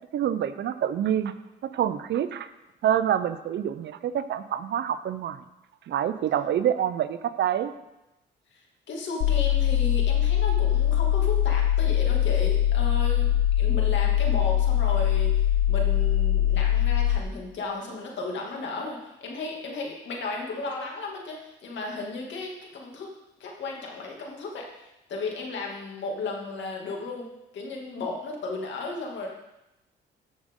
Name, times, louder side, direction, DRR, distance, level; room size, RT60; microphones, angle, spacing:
voice 1, 0.1-1.3 1.6-2.5 2.8-5.4 5.9-7.7, right 10 dB, 65° right, 12 dB, 0.6 m, -26 dB
voice 2, 8.9-13.3 13.6-23.1 23.4-27.3 27.5-29.3, left 3 dB, 65° left, 0 dB, 2.4 m, -34 dB
sound 1, 9.2-17.2, left 11 dB, 85° left, 0.8 m, -22 dB
13.5 x 6.4 x 3.8 m, 0.92 s
cardioid pair, 90°, 20 cm